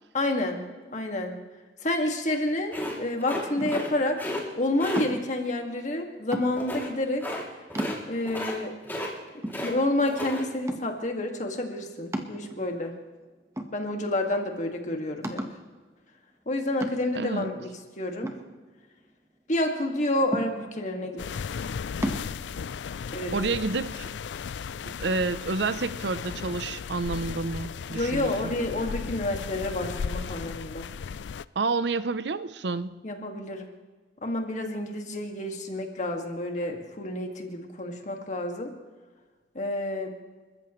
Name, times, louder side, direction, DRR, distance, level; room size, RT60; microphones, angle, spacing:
voice 1, 0.1-1.3 1.8-4.2 4.6-7.2 8.1-8.7 9.6-12.9 13.7-15.4 16.5-17.7 18.0-18.3 19.5-21.4 23.1-23.4 27.9-30.9 33.0-33.7 34.2-38.7 39.5-40.1, left 1 dB, 45° left, 3 dB, 2.1 m, -29 dB
sound 1, 2.7-4.4 4.8-5.0 6.6-6.9 7.2-7.4 7.7-8.0 8.3-8.6 8.8-9.7 10.0-10.4, left 1 dB, 10° left, 2.8 m, -33 dB
sound 2, 3.6-4.0 5.0-5.4 6.3-6.8 7.3-7.4 7.8-8.4 8.9-9.0 9.4-10.2 10.7-11.1 12.1-12.9 13.6-14.2 14.5-14.6 15.2-15.7 16.8-17.3 18.2-19.1 20.3-20.9 22.0-22.3, right 1 dB, 15° right, 1.2 m, -34 dB
voice 2, 17.1-17.6 23.3-24.1 24.9-28.5 31.6-33.0, right 3 dB, 75° right, 14 dB, 0.7 m, -29 dB
sound 3, 21.2-31.4, left 6 dB, 80° left, 0.4 m, -35 dB
29.5 x 14.5 x 3.2 m, 1.4 s
head